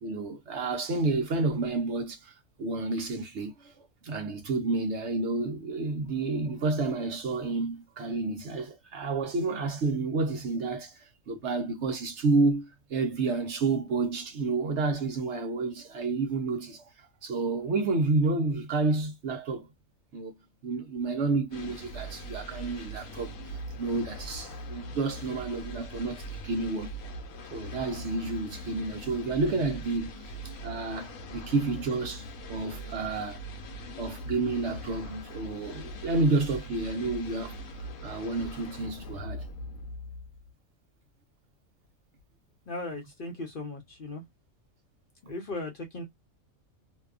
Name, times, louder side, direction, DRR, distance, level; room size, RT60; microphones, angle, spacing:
voice 1, 0.0-19.7 20.1-20.3 20.6-26.9 27.5-33.4 34.0-37.6 38.0-39.5, right 3 dB, 60° right, 0.9 m, -30 dB
sound 1, 21.5-40.5, equal, 75° left, 1.1 m, -41 dB
voice 2, 42.7-44.2 45.2-46.0, left 2 dB, 45° left, 0.8 m, -37 dB
2.8 x 2.3 x 2.3 m
omnidirectional pair, 1.5 m